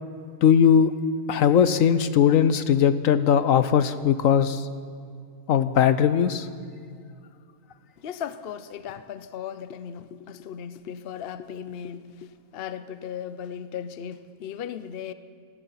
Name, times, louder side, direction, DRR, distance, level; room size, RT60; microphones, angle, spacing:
voice 1, 0.4-0.9 1.3-4.7 5.5-6.5, left 8 dB, 70° left, 1.1 m, -19 dB
voice 2, 8.0-15.1, left 8 dB, 50° left, 0.8 m, -37 dB
27.0 x 17.5 x 5.7 m
omnidirectional pair, 1.5 m